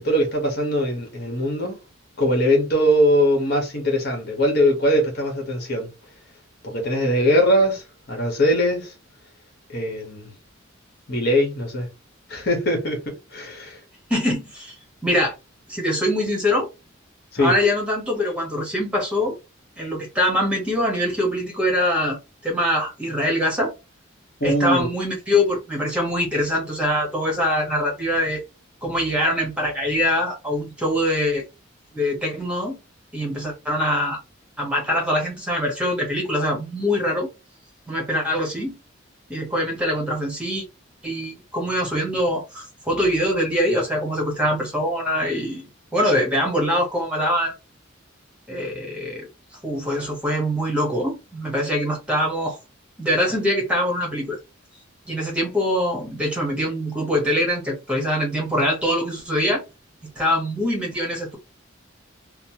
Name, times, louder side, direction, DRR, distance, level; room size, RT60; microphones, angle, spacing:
voice 1, 0.0-1.8 2.2-5.9 6.6-8.9 9.7-10.3 11.1-11.9 12.3-13.8 17.3-17.5 24.4-24.9, equal, 50° left, 1.2 m, -21 dB
voice 2, 14.1-14.7 15.0-15.3 15.7-16.7 17.4-19.3 19.8-23.7 24.4-28.4 28.8-31.4 31.9-32.8 33.1-34.2 34.6-37.3 37.9-38.7 39.3-40.6 41.0-47.6 48.5-49.3 49.6-52.6 53.0-54.4 55.0-59.6 60.2-61.4, equal, 5° right, 1.1 m, -23 dB
3.0 x 2.0 x 2.8 m
head